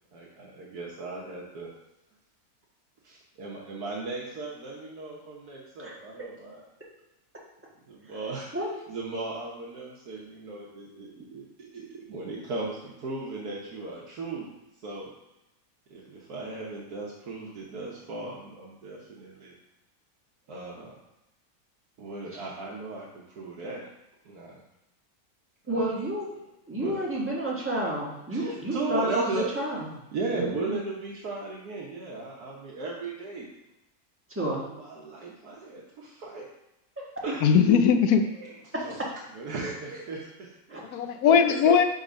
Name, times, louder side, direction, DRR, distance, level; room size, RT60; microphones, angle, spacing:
voice 1, 0.1-1.7 3.0-6.6 7.9-14.5 14.8-15.1 15.9-19.5 20.5-21.0 22.0-23.8 24.2-24.6 25.7-25.9 26.7-27.0 28.3-29.5 30.1-33.5 34.4-36.5 37.2-37.5 38.3-38.5 38.8-39.0 39.3-41.0 41.5-41.6, right 3 dB, 80° right, -4 dB, 1.5 m, -37 dB
voice 2, 25.7-26.3 26.7-29.9 30.3-30.8 34.3-34.6 37.0-37.1 40.7-40.8 41.3-41.4, right 1 dB, 10° right, -5 dB, 1.3 m, -30 dB
voice 3, 37.4-38.3 40.9-41.8, left 7 dB, 80° left, 7 dB, 1.1 m, -19 dB
5.8 x 4.0 x 5.1 m, 0.94 s
omnidirectional pair, 1.6 m